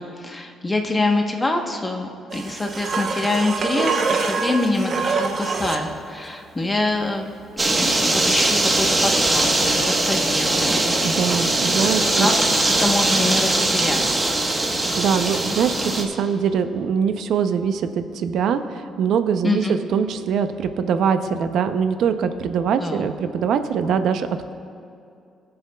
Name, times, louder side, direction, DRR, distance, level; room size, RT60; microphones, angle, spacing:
voice 1, 0.0-7.3 7.8-10.8 12.0-14.2 19.4-19.8 22.8-23.1, left 2 dB, 15° left, 3 dB, 1.0 m, -25 dB
sound 1, 2.3-5.9 8.8-8.9, right 4 dB, 45° right, 0.8 m, -25 dB
sound 2, 7.6-16.0, right 2 dB, 20° right, 1.1 m, -20 dB
voice 2, 11.0-12.3 15.0-24.3, right 7 dB, 75° right, 9 dB, 0.5 m, -22 dB
22.5 x 7.7 x 2.3 m, 2.5 s
cardioid pair, 125°, 0 cm